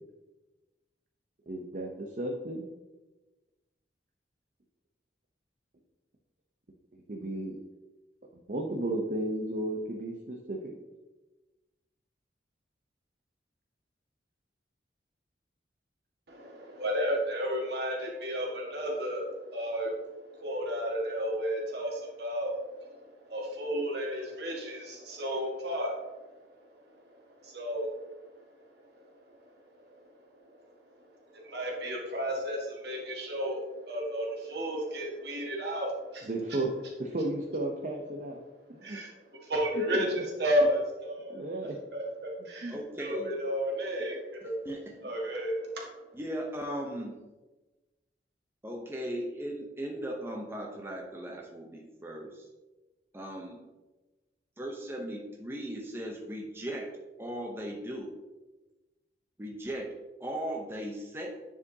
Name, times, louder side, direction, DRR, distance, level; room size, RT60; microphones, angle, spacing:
voice 1, 1.5-2.6 7.1-7.6 8.5-10.7 36.3-36.7 37.0-38.4 38.7-39.0 39.9-40.2 41.3-41.8 42.6-42.8 43.2-43.3, right 1 dB, 45° right, 2 dB, 0.7 m, -34 dB
voice 2, 16.3-26.3 26.7-26.8 27.1-28.1 28.7-29.4 29.7-29.9 30.4-30.7 31.0-36.3 38.8-39.1 39.4-41.3 41.6-44.5 45.0-45.9, equal, 65° right, -1 dB, 1.6 m, -33 dB
voice 3, 42.7-43.3 44.6-45.1 46.1-47.2 48.6-52.4 53.1-53.6 54.6-56.9 57.2-58.2 59.4-59.9 60.2-61.3, right 1 dB, 15° right, 0 dB, 0.7 m, -37 dB
9.6 x 4.8 x 2.8 m, 1.1 s
head